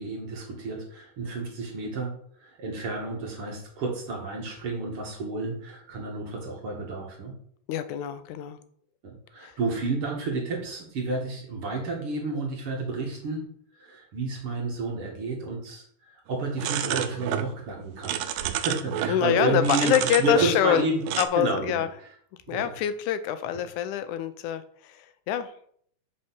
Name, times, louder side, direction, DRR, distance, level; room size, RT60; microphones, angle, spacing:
voice 1, 0.0-2.1 2.4-7.4 9.0-13.5 13.8-15.9 16.3-18.2 18.5-21.0 21.4-21.8 22.5-22.7, right 3 dB, 50° right, 0 dB, 2.2 m, -31 dB
voice 2, 7.7-8.6 9.4-9.5 19.1-20.9 21.2-21.9 22.5-25.0 25.3-25.5, left 10 dB, 85° left, 11 dB, 2.1 m, -25 dB
sound 1, 16.6-17.5 17.8-19.2 19.6-20.8 21.1-21.3, right 10 dB, 80° right, 1.7 m, -29 dB
6.3 x 5.6 x 6.0 m, 0.62 s
omnidirectional pair, 3.5 m